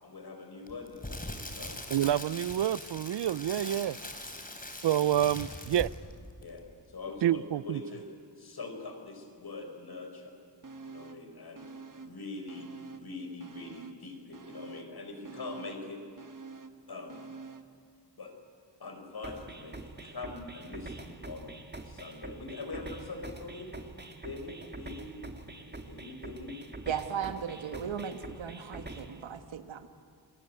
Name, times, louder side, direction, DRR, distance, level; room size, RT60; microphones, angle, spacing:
voice 1, 0.0-1.7 6.4-8.1 8.4-10.3 10.8-16.2 16.9-17.2 18.1-18.3 18.8-21.5 21.8-23.7 24.2-25.2 25.9-26.6, left 3 dB, 55° left, 5 dB, 5.0 m, -43 dB
Crackle, 0.7-6.2 6.4-6.6, left 1 dB, 20° left, 3.6 m, -41 dB
voice 2, 1.9-4.0 4.8-5.9 7.2-7.8, right 11 dB, 70° right, 21 dB, 0.6 m, -28 dB
sound 1, 10.6-11.3 11.6-13.1 13.4-17.8 18.1-18.2, right 4 dB, 45° right, 1.4 m, -48 dB
sound 2, 19.2-29.2, right 2 dB, 20° right, 2.3 m, -45 dB
voice 3, 26.9-29.9, right 7 dB, 85° right, 9 dB, 1.7 m, -36 dB
29.0 x 19.5 x 9.2 m, 2.2 s
cardioid pair, 70°, 44 cm